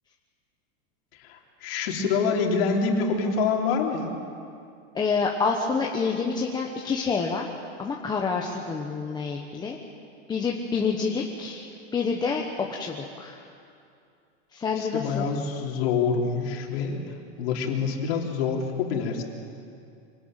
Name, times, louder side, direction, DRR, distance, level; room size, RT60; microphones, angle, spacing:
voice 1, 1.1-4.1 14.8-19.2, left 5 dB, 50° left, 1 dB, 3.5 m, -26 dB
voice 2, 4.9-7.5 7.8-9.8 10.3-13.4 14.5-15.3, left 5 dB, 10° left, 0 dB, 1.1 m, -28 dB
25.0 x 19.0 x 9.0 m, 2.4 s
supercardioid pair, 155°, 37 cm